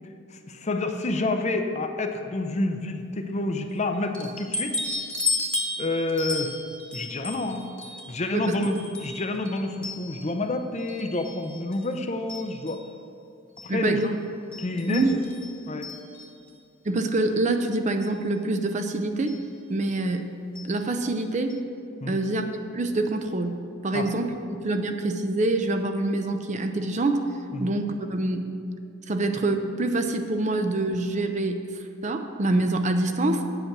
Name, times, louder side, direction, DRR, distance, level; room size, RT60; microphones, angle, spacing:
voice 1, 0.3-4.8 5.8-6.5 6.9-7.6 8.1-12.8 13.6-14.1 14.6-15.1 15.7-15.9 22.0-22.2 23.9-24.1 27.5-27.7, left 2 dB, 35° left, 6 dB, 0.6 m, -28 dB
sound 1, 4.1-10.5 10.9-11.9 12.3-12.9 13.6-13.7 14.0-14.1 14.5-16.5 17.5-17.6 18.0-18.1 19.2-19.5 20.6-20.8 21.1-21.2 21.5-21.6, left 3 dB, 5° left, 1.0 m, -34 dB
voice 2, 8.3-8.7 13.7-14.1 14.9-15.2 16.9-19.3 19.7-20.3 20.6-21.6 22.1-22.5 22.7-23.5 23.8-24.4 24.6-27.2 27.6-28.5 29.1-31.6 32.0-33.5, right 2 dB, 35° right, 7 dB, 0.6 m, -25 dB
8.9 x 8.0 x 6.0 m, 2.6 s
head